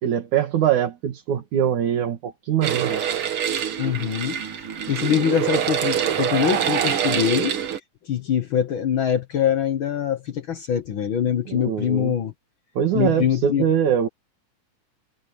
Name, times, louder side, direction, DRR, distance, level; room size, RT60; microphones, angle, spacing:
voice 1, 0.0-3.0 11.5-12.1 12.8-14.1, right 9 dB, 75° right, 3.2 m, -23 dB
sound 1, 2.6-7.8, right 9 dB, 55° right, 1.9 m, -25 dB
voice 2, 3.8-7.5 8.0-12.3 12.9-13.7, left 9 dB, 60° left, 1.4 m, -24 dB
omnidirectional pair, 3.5 m